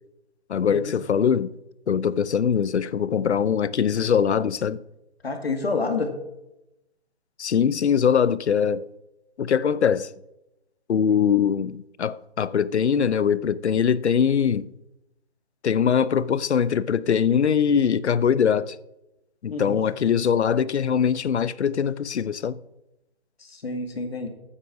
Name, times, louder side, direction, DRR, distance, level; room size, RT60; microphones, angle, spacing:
voice 1, 0.5-1.5 1.9-4.8 7.4-8.9 9.4-10.1 10.9-14.7 15.6-18.8 19.4-22.6, left 7 dB, 90° left, 0.7 m, -22 dB
voice 2, 5.2-6.1 19.5-19.8 23.6-24.3, left 3 dB, 65° left, 2.3 m, -28 dB
9.7 x 8.5 x 6.1 m
hypercardioid pair, 180°, 33 cm